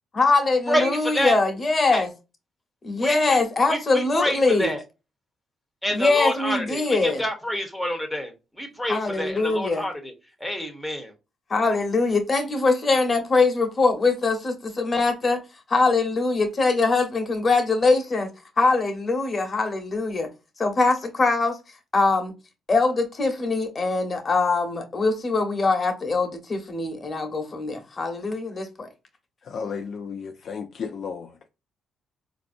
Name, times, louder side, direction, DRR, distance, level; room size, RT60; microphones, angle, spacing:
voice 1, 0.1-2.1 2.8-4.7 5.9-7.2 8.9-9.8 11.5-15.4 15.7-18.3 18.6-20.3 20.6-21.6 21.9-22.3 22.7-28.9, left 3 dB, 35° left, 1.1 m, -22 dB
voice 2, 0.7-1.4 1.9-2.0 3.0-3.4 3.7-4.8 5.8-8.3 8.6-10.1 10.4-11.1, equal, ahead, 1.0 m, -27 dB
voice 3, 29.4-31.5, left 6 dB, 55° left, 0.4 m, -34 dB
4.1 x 2.7 x 2.5 m
cardioid pair, 90°, 0 cm